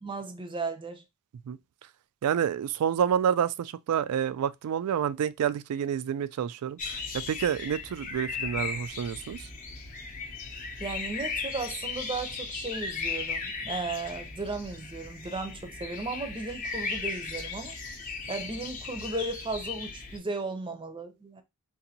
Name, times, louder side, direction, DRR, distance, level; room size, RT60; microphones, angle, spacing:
voice 1, 0.0-1.0 10.8-17.8 18.3-21.4, right 3 dB, 20° right, 0.6 m, -35 dB
voice 2, 2.2-9.5, right 8 dB, 85° right, 0.3 m, -28 dB
sound 1, 6.8-20.2, left 4 dB, 40° left, 0.8 m, -37 dB
3.9 x 2.6 x 2.8 m
head